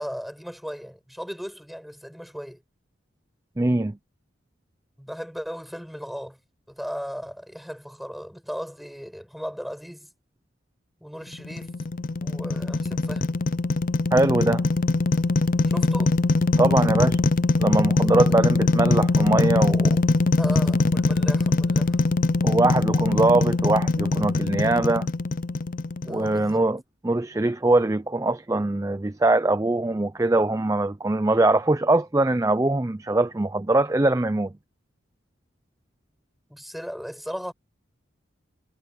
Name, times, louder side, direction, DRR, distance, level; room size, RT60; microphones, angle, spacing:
voice 1, 0.0-2.6 5.0-6.4 6.7-10.1 11.0-11.8 12.2-13.4 15.6-16.2 18.4-18.5 20.4-22.0 26.1-26.7 36.5-37.5, equal, ahead, 6.0 m, -36 dB
voice 2, 3.6-4.0 14.1-14.6 16.6-17.2 17.6-20.0 22.4-25.1 26.0-26.8 27.0-34.5, right 2 dB, 15° right, 0.4 m, -22 dB
sound 1, 11.3-26.5, left 3 dB, 45° left, 0.5 m, -22 dB
head